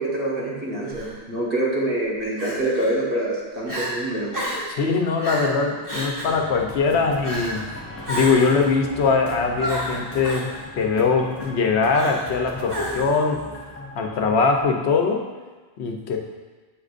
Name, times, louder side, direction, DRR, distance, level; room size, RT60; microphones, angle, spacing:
voice 1, 0.0-4.3, right 1 dB, 55° right, -5 dB, 1.6 m, -25 dB
Crying sobbing, 0.9-1.1 2.4-2.9 3.3-3.4 3.7-3.9 4.3-4.7 5.2-5.5 5.8-6.4 7.2-7.6 8.0-8.6 9.6-10.5 11.9-12.4 12.7-13.2, equal, 20° right, 1.2 m, -30 dB
voice 2, 4.7-7.6 8.1-10.5 10.8-13.4 14.0-15.3 15.8-16.2, left 4 dB, 90° left, 2 dB, 1.0 m, -21 dB
sound 1, 6.3-14.6, left 1 dB, 15° left, 0.6 m, -39 dB
7.2 x 6.3 x 2.5 m, 1.3 s
omnidirectional pair, 1.1 m